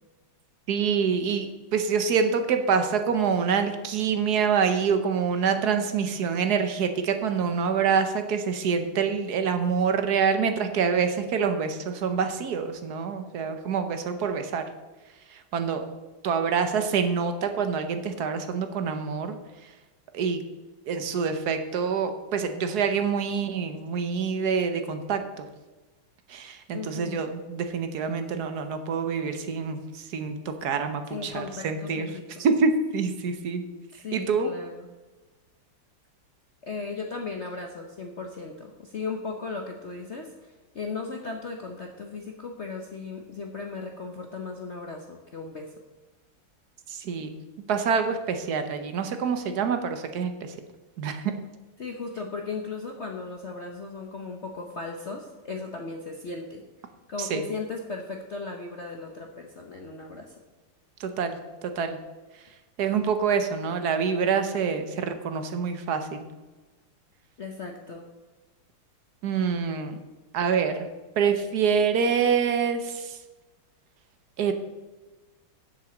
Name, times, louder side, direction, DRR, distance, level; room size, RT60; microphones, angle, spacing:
voice 1, 0.7-14.7 15.3-15.8 16.2-19.4 20.1-20.4 20.9-25.4 26.3-32.1 32.4-33.6 34.1-34.5 46.9-47.4 47.7-50.5 51.0-51.3 57.2-57.4 61.0-62.0 62.8-66.3 69.2-70.0 70.3-70.9 71.2-73.2 74.4-74.5, right 6 dB, 60° right, 7 dB, 1.2 m, -26 dB
voice 2, 26.7-27.2 31.1-32.4 33.9-34.9 36.6-45.7 51.8-56.6 57.1-60.3 67.4-68.0, left 4 dB, 60° left, 2 dB, 0.7 m, -36 dB
7.5 x 7.4 x 7.1 m, 1.2 s
omnidirectional pair, 2.4 m